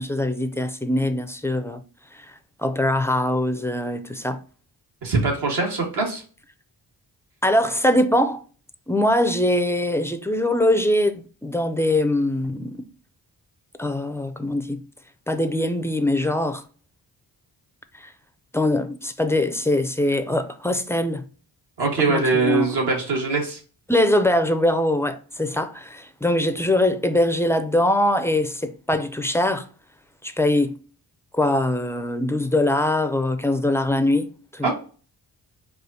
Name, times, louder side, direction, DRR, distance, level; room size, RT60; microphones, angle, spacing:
voice 1, 0.0-1.8 2.1-2.3 2.6-4.4 7.4-8.4 8.9-12.9 13.8-14.8 15.3-16.6 18.0-18.1 18.5-21.2 22.1-22.7 23.9-29.7 30.2-30.8 31.3-34.7, left 1 dB, 5° left, 0.3 m, -22 dB
voice 2, 5.0-6.2 21.8-23.6 34.6-34.7, right 3 dB, 70° right, 1.6 m, -22 dB
4.8 x 2.4 x 2.6 m
cardioid pair, 85°, 41 cm